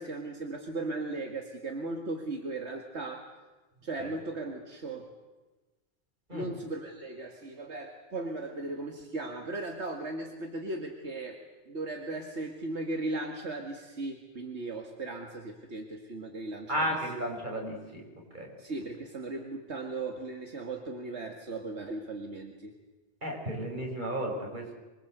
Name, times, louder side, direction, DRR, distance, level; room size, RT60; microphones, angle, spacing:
voice 1, 0.0-3.3 3.8-5.1 6.3-11.4 11.7-16.9 18.6-22.7, right 2 dB, 75° right, 3 dB, 2.3 m, -37 dB
voice 2, 16.7-18.0 18.3-18.5 23.2-24.7, equal, 45° right, 0 dB, 6.5 m, -33 dB
26.5 x 22.5 x 8.0 m, 1.2 s
omnidirectional pair, 1.2 m